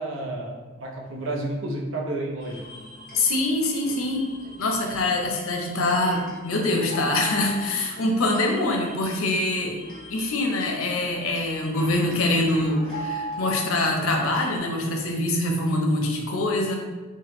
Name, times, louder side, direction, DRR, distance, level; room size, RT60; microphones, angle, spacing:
voice 1, 0.0-2.8, right 1 dB, 65° right, -1 dB, 0.5 m, -31 dB
sound 1, 2.4-14.6, equal, ahead, 0.9 m, -39 dB
voice 2, 3.1-4.3 4.6-9.8 10.1-16.8, left 2 dB, 80° left, 1 dB, 0.6 m, -24 dB
3.2 x 2.1 x 3.0 m, 1.2 s
head